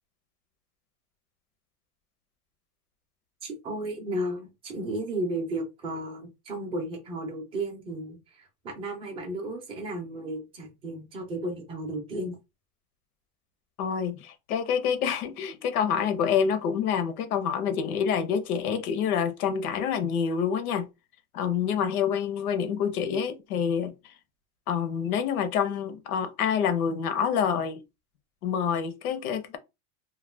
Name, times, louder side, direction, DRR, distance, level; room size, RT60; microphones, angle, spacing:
voice 1, 3.4-12.4, right 1 dB, 15° right, 0.4 m, -34 dB
voice 2, 13.8-20.9 21.3-24.1 24.7-27.8 28.4-29.6, left 7 dB, 90° left, 0.8 m, -27 dB
2.4 x 2.1 x 3.2 m
supercardioid pair, 160°, 43 cm